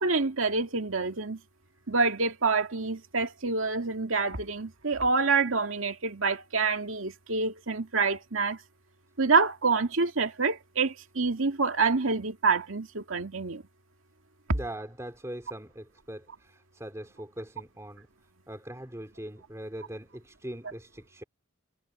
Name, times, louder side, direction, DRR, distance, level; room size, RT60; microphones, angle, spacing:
voice 1, 0.0-1.4 1.9-8.6 9.2-13.6, right 4 dB, 85° right, 2.1 m, -27 dB
voice 2, 14.5-18.1 18.5-21.2, right 1 dB, 15° right, 3.1 m, -41 dB
head